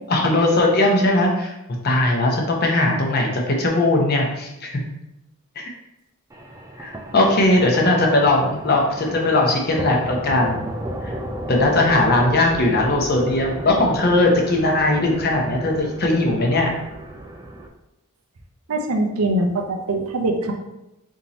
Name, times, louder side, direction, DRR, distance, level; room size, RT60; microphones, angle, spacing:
voice 1, 0.1-1.5 1.8-4.7 5.6-5.7 6.8-10.7 11.0-11.1 11.5-16.7, left 2 dB, 45° left, 0 dB, 0.8 m, -19 dB
sound 1, 6.3-17.7, right 1 dB, 15° right, 0.3 m, -33 dB
voice 2, 18.7-20.5, right 1 dB, 90° right, 3 dB, 0.6 m, -22 dB
3.6 x 2.8 x 4.0 m, 0.92 s
head